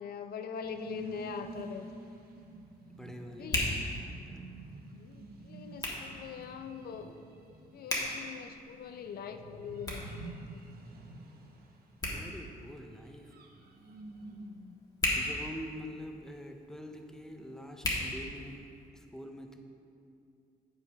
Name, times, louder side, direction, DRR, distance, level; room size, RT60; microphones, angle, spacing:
voice 1, 0.0-2.1 3.3-4.0 4.7-10.7 14.2-14.8, left 6 dB, 75° left, 8 dB, 0.5 m, -43 dB
sound 1, 0.6-14.5, right 2 dB, 70° right, 0.8 m, -49 dB
Hands, 1.2-18.9, left 1 dB, 25° left, 1.4 m, -40 dB
voice 2, 3.0-4.5 12.1-13.3 15.2-18.7 18.9-19.6, equal, 5° left, 4 dB, 0.6 m, -45 dB
8.0 x 5.5 x 5.3 m, 2.5 s
wide cardioid pair, 140°, 16 cm